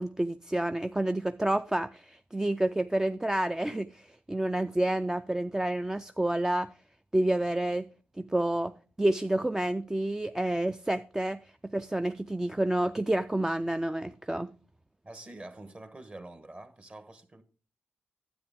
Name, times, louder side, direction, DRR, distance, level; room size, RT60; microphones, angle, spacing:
voice 1, 0.0-6.7 7.1-7.9 8.2-8.7 9.0-14.5, right 1 dB, 15° right, 0.3 m, -29 dB
voice 2, 15.0-17.4, right 2 dB, 30° right, 1.2 m, -46 dB
9.5 x 8.2 x 3.5 m
cardioid pair, 70°, 4 cm